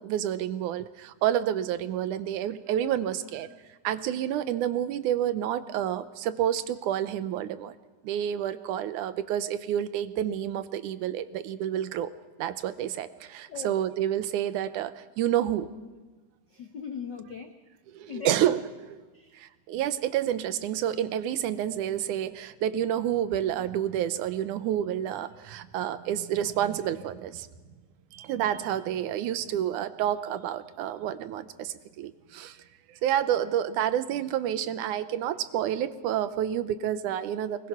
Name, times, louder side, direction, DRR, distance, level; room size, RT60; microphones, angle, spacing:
voice 1, 0.0-3.5 3.8-7.8 8.0-12.1 12.4-15.7 17.9-18.6 19.3-27.5 28.1-32.6 33.0-37.7, right 11 dB, 85° right, 13 dB, 2.4 m, -29 dB
voice 2, 16.5-17.5 18.1-18.5 19.1-19.4, left 7 dB, 70° left, 6 dB, 1.0 m, -39 dB
24.0 x 20.5 x 6.0 m, 1.3 s
omnidirectional pair, 3.5 m